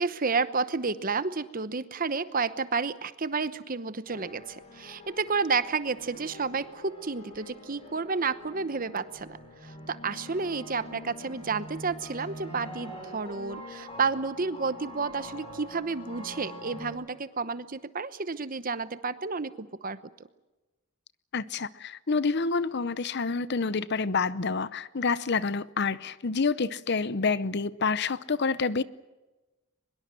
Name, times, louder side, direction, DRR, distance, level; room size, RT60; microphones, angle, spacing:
voice 1, 0.0-20.0, right 4 dB, 40° right, 0.9 m, -31 dB
sound 1, 4.1-16.9, equal, 25° left, 7.5 m, -45 dB
voice 2, 21.3-28.8, left 4 dB, 50° left, 0.7 m, -28 dB
23.5 x 22.0 x 7.7 m
head